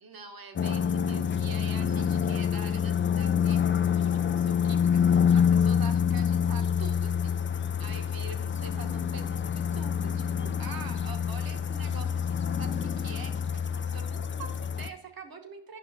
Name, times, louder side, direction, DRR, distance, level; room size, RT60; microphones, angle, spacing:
voice 1, 0.0-7.4 7.8-15.8, right 4 dB, 50° right, 5 dB, 1.1 m, -45 dB
sound 1, 0.6-14.9, left 7 dB, 30° left, 0.4 m, -27 dB
10.0 x 5.6 x 2.7 m, 0.77 s
cardioid pair, 60°, 47 cm